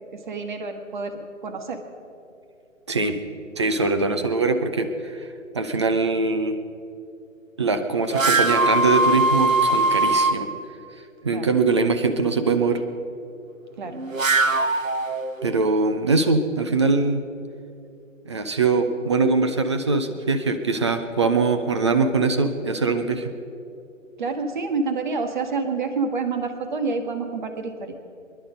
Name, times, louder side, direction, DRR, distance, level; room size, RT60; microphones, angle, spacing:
voice 1, 0.0-1.8 11.3-11.5 13.8-14.0 24.2-27.9, right 4 dB, 35° right, 6 dB, 1.5 m, -28 dB
voice 2, 3.6-5.3 5.5-6.6 7.6-10.5 11.2-12.8 15.4-17.2 18.3-23.3, right 3 dB, 20° right, 8 dB, 0.6 m, -22 dB
sound 1, 8.1-10.4 13.9-15.6, right 2 dB, 80° right, 1.1 m, -21 dB
22.5 x 11.5 x 5.2 m, 2.6 s
figure-of-eight pair, 140°, 39 cm